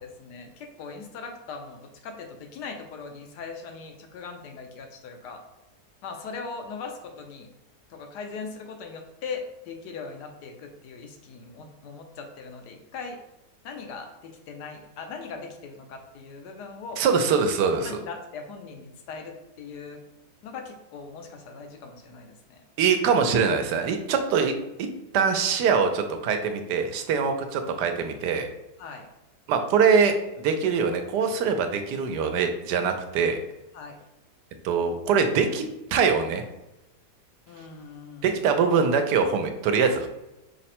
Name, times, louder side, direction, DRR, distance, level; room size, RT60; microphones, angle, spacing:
voice 1, 0.0-5.4 6.0-7.5 7.9-13.2 13.6-17.0 17.7-20.0 20.4-22.6 28.8-29.1 33.7-34.0 37.5-38.4, left 4 dB, 80° left, 3 dB, 1.3 m, -40 dB
voice 2, 17.0-18.0 22.8-24.5 24.8-28.5 29.5-33.4 34.6-35.7 35.9-36.4 38.2-40.1, right 6 dB, 85° right, 6 dB, 1.2 m, -23 dB
5.1 x 2.1 x 4.2 m, 0.96 s
omnidirectional pair, 1.7 m